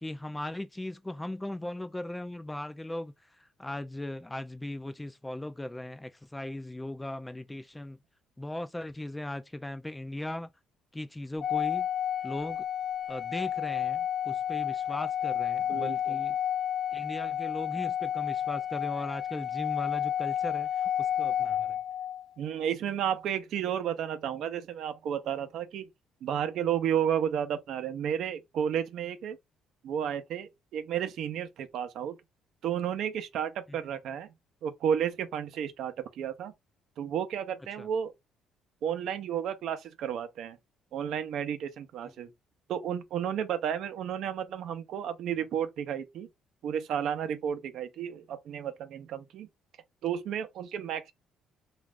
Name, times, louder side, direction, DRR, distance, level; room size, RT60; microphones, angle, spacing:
voice 1, 0.0-8.0 8.4-10.5 10.9-11.9 12.2-12.7 13.1-16.4 16.9-21.8 37.8-37.9 42.2-42.3, left 1 dB, 10° left, 0.3 m, -38 dB
Organ, 11.4-22.3, left 10 dB, 75° left, 0.4 m, -31 dB
voice 2, 15.7-16.2 22.4-25.9 26.2-29.4 29.8-32.2 32.6-34.3 34.6-36.5 37.0-38.1 38.8-40.6 40.9-42.3 42.7-46.3 46.6-49.5 50.0-51.1, right 9 dB, 70° right, 0.5 m, -32 dB
2.4 x 2.4 x 3.4 m
cardioid pair, 105°, 0 cm